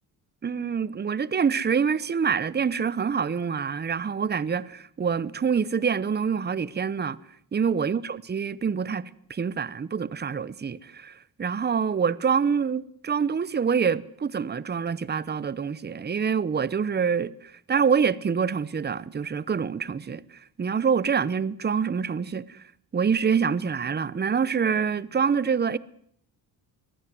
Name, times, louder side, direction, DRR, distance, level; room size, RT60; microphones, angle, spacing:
voice 1, 0.4-7.2 7.5-20.2 20.6-22.6 22.9-25.8, right 6 dB, 25° right, 0.9 m, -26 dB
23.0 x 16.0 x 9.4 m
cardioid pair, 100°, 37 cm